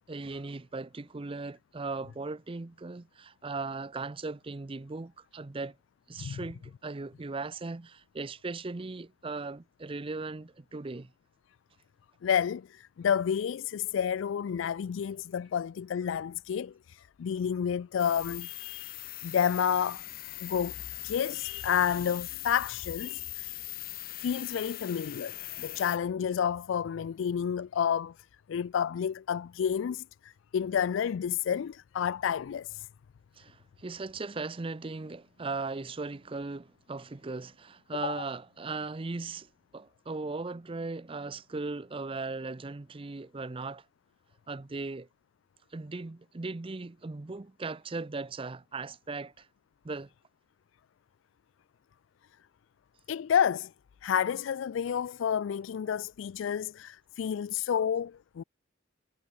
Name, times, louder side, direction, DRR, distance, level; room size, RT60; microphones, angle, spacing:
voice 1, 0.1-5.8 6.1-11.1 33.4-43.9 44.5-45.1 45.7-49.5 49.8-50.1, right 3 dB, 25° right, 0.5 m, -38 dB
voice 2, 12.2-19.0 19.2-20.0 20.4-20.7 21.0-23.6 24.2-28.1 28.5-32.9 38.0-38.2 53.1-53.7 54.0-58.4, left 8 dB, 75° left, 0.3 m, -30 dB
sound 1, 18.0-26.0, left 16 dB, 45° left, 0.9 m, -41 dB
head